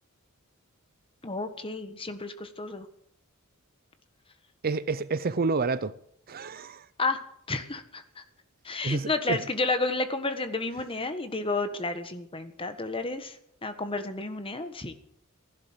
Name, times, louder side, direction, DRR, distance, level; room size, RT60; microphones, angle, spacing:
voice 1, 1.2-2.9 7.0-7.2 7.5-8.2 8.6-14.9, left 3 dB, 25° left, 1.4 m, -31 dB
voice 2, 4.6-6.0 6.3-6.9 8.8-9.4, right 4 dB, 45° right, 0.6 m, -29 dB
15.5 x 11.5 x 7.7 m
head